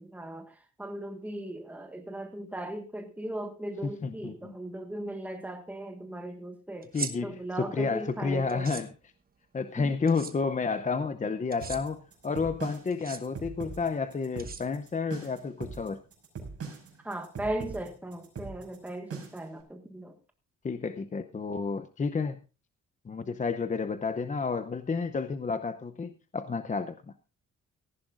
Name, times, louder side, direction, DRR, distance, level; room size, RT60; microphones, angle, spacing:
voice 1, 0.0-6.9 7.2-8.7 9.8-9.9 17.0-20.1, right 1 dB, 5° right, 4 dB, 1.6 m, -38 dB
voice 2, 3.8-4.6 6.9-8.9 9.5-16.0 20.6-22.4 23.1-26.9, left 4 dB, 25° left, 10 dB, 0.6 m, -31 dB
sound 1, 6.8-7.1 8.5-8.8 10.1-10.3 11.5-11.8 12.9-13.2 14.4-15.0, right 5 dB, 30° right, 1.1 m, -38 dB
sound 2, 11.6-19.5, right 5 dB, 45° right, 5.8 m, -41 dB
17.5 x 14.5 x 2.5 m, 0.31 s
wide cardioid pair, 165°, 31 cm